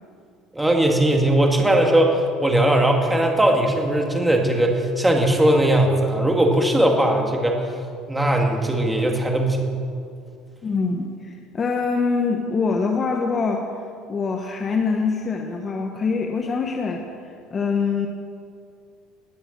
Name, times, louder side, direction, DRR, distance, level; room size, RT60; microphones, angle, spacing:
voice 1, 0.5-7.7 8.1-9.7, right 1 dB, 5° right, 1 dB, 1.9 m, -19 dB
voice 2, 10.6-13.7 14.1-17.1 17.5-18.1, left 4 dB, 25° left, 2 dB, 1.0 m, -24 dB
20.0 x 6.9 x 8.0 m, 2.3 s
cardioid pair, 140°, 0 cm